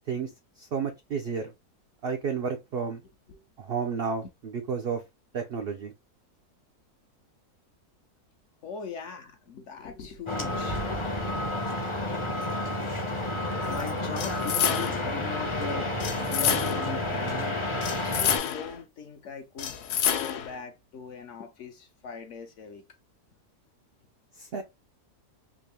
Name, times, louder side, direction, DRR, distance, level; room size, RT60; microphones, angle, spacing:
voice 1, 0.6-1.5 2.0-3.0 3.6-5.0 5.3-5.9 24.4-24.6, right 6 dB, 70° right, 0.5 m, -31 dB
voice 2, 8.6-10.9 13.7-17.6 18.0-22.8, left 5 dB, 60° left, 0.9 m, -40 dB
sound 1, 10.3-18.4, left 1 dB, 30° left, 0.6 m, -30 dB
sound 2, 14.2-15.1 16.0-17.0 17.8-18.8 19.6-20.6, left 9 dB, 85° left, 1.2 m, -28 dB
3.6 x 2.5 x 3.3 m
omnidirectional pair, 1.6 m